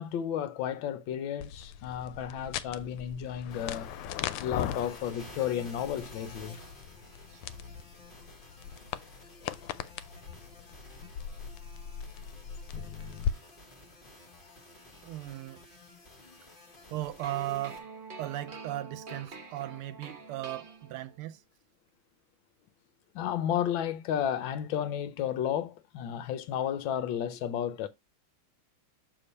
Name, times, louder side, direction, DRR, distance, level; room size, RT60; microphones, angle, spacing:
voice 1, 0.0-3.9 4.4-6.6 23.1-27.9, left 9 dB, 70° left, 1.3 m, -32 dB
sound 1, 1.4-13.3, left 9 dB, 85° left, 1.5 m, -39 dB
sound 2, 3.5-17.8, left 2 dB, 30° left, 1.1 m, -52 dB
voice 2, 15.0-15.6 16.9-17.8 18.2-21.4, right 15 dB, 85° right, 1.4 m, -37 dB
sound 3, 17.2-21.3, right 4 dB, 60° right, 0.5 m, -46 dB
6.7 x 3.5 x 4.1 m
omnidirectional pair, 2.4 m